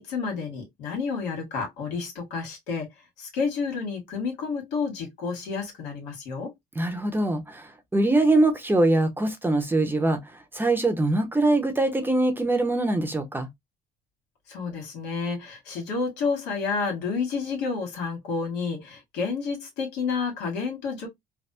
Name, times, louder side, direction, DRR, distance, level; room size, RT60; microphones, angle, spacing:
voice 1, 0.0-2.9 3.2-6.5 14.5-21.1, left 5 dB, 90° left, 1.7 m, -30 dB
voice 2, 6.8-10.2 10.5-13.5, right 2 dB, 10° right, 0.7 m, -23 dB
3.4 x 2.2 x 2.6 m
cardioid pair, 110°, 17 cm